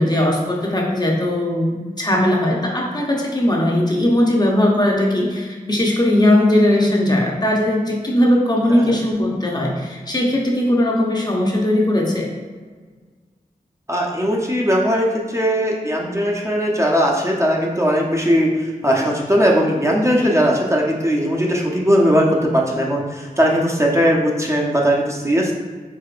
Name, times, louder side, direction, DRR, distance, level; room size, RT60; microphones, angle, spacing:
voice 1, 0.0-12.3 20.2-20.3 23.4-23.5, left 1 dB, 30° left, -2 dB, 0.8 m, -18 dB
voice 2, 13.9-22.3 22.5-25.5, equal, 20° right, -2 dB, 0.7 m, -19 dB
4.6 x 4.2 x 2.5 m, 1.5 s
wide cardioid pair, 70°, 15 cm